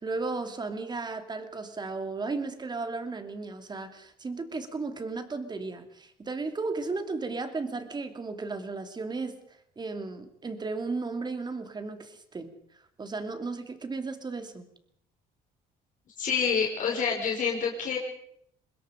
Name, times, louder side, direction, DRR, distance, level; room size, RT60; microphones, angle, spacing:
voice 1, 0.0-9.4 9.8-14.6, right 3 dB, 25° right, 8 dB, 2.7 m, -35 dB
voice 2, 16.2-18.0, left 6 dB, 50° left, -1 dB, 5.4 m, -27 dB
25.0 x 21.0 x 5.1 m, 0.69 s
cardioid pair, 110°, 17 cm